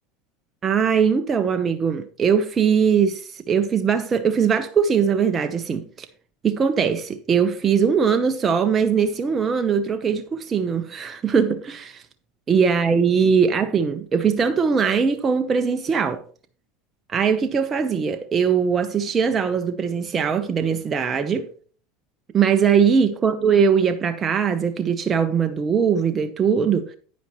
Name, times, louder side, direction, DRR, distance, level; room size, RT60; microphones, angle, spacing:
voice 1, 0.6-6.1 6.4-12.0 12.5-16.2 17.1-21.5 22.3-27.0, right 6 dB, 25° right, 0.8 m, -21 dB
9.8 x 9.4 x 3.1 m
supercardioid pair, 125°, 0 cm